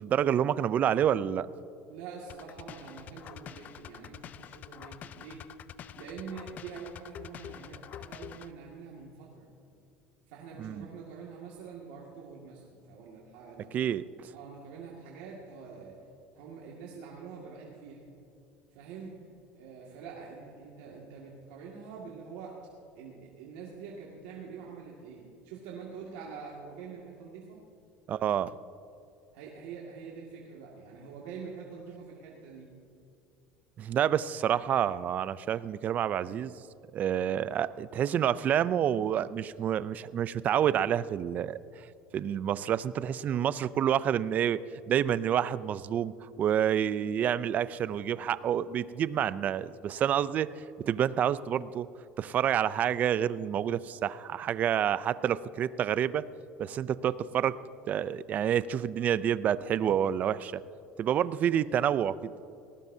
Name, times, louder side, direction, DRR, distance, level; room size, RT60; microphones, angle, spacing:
voice 1, 0.0-1.5 10.6-10.9 13.7-14.3 28.1-28.5 33.8-36.5 36.9-41.6 42.1-44.6 44.9-50.5 50.9-51.9 52.2-56.2 56.6-57.6 57.9-60.6 61.0-62.3, right 9 dB, 40° right, 17 dB, 0.4 m, -28 dB
voice 2, 1.9-5.6 6.0-9.5 10.3-13.7 14.3-16.0 16.3-18.0 18.7-19.2 19.5-22.6 23.0-27.6 29.3-32.7, right 5 dB, 85° right, -3 dB, 2.1 m, -45 dB
sound 1, 2.3-8.5, left 10 dB, 40° left, 0.4 m, -46 dB
19.0 x 18.0 x 2.7 m, 2.7 s
cardioid pair, 135°, 4 cm